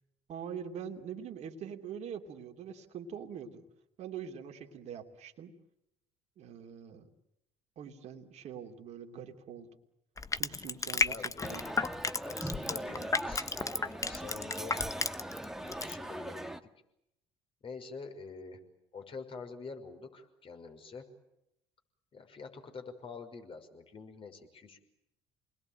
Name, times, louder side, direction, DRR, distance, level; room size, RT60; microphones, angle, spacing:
voice 1, 0.3-3.6 4.0-5.5 6.4-7.1 7.8-9.7 10.4-11.6, right 8 dB, 55° right, 3 dB, 2.9 m, -44 dB
Crushing, 10.2-15.4 15.7-15.9, left 4 dB, 25° left, 1.2 m, -32 dB
voice 2, 11.0-11.7 12.2-14.8 15.6-16.5 17.6-18.6 18.9-21.1 22.1-24.8, left 4 dB, 40° left, 5 dB, 5.9 m, -46 dB
sound 1, 11.4-16.6, right 1 dB, 5° right, 1.9 m, -40 dB
28.5 x 21.0 x 9.1 m, 0.84 s
hypercardioid pair, 60°, 14 cm